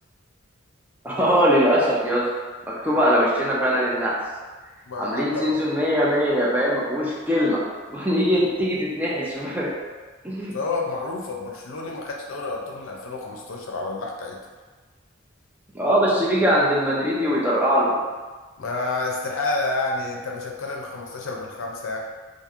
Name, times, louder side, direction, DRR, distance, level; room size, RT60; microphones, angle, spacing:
voice 1, 1.0-2.3 2.8-4.2 5.0-7.6 7.9-9.7 10.2-10.5 15.7-17.9, equal, 10° right, -6 dB, 0.5 m, -21 dB
voice 2, 4.9-5.5 10.5-14.4 18.6-22.0, left 3 dB, 85° left, 0 dB, 0.5 m, -29 dB
3.0 x 2.5 x 2.4 m, 1.4 s
head